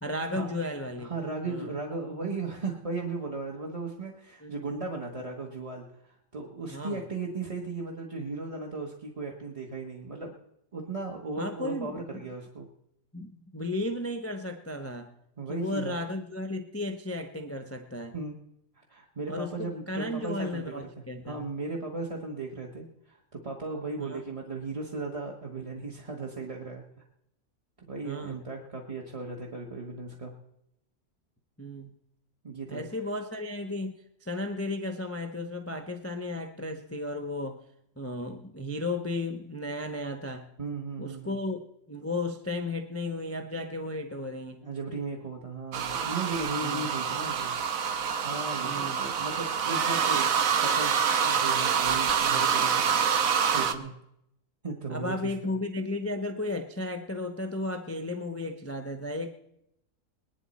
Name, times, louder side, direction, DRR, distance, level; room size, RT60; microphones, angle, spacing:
voice 1, 0.0-1.1 1.4-1.7 4.4-4.5 6.7-7.0 11.4-12.3 13.1-15.1 15.5-18.1 19.3-21.4 24.0-24.2 28.0-28.4 31.6-31.9 32.7-37.6 38.0-40.5 41.0-44.6 46.6-46.9 48.6-49.0 53.6-53.9 54.9-59.3, left 2 dB, 20° left, 6 dB, 0.4 m, -34 dB
voice 2, 1.0-10.3 10.7-12.7 15.4-16.0 18.1-18.4 18.9-20.8 21.2-26.8 27.9-30.3 32.4-32.9 40.6-41.4 44.6-47.5 48.2-52.9 53.5-53.9 54.6-55.3, right 3 dB, 25° right, -1 dB, 1.0 m, -36 dB
sound 1, 45.7-53.7, right 7 dB, 60° right, 1.1 m, -26 dB
20.5 x 10.5 x 4.1 m, 0.80 s
omnidirectional pair, 1.8 m